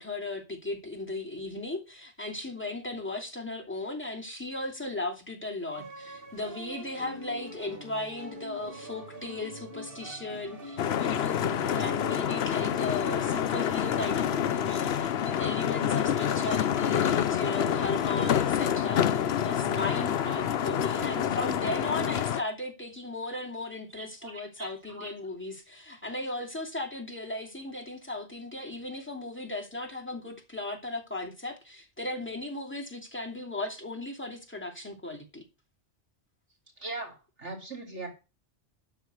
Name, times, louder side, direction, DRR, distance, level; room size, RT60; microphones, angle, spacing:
voice 1, 0.0-35.4, left 2 dB, 10° left, 2.8 m, -36 dB
sound 1, 5.7-22.0, right 1 dB, 55° right, 2.0 m, -44 dB
sound 2, 10.8-22.4, left 9 dB, 70° left, 0.9 m, -27 dB
voice 2, 24.0-24.7 25.0-25.1 36.8-38.1, right 3 dB, 85° right, 3.8 m, -40 dB
12.5 x 4.2 x 8.0 m
omnidirectional pair, 1.2 m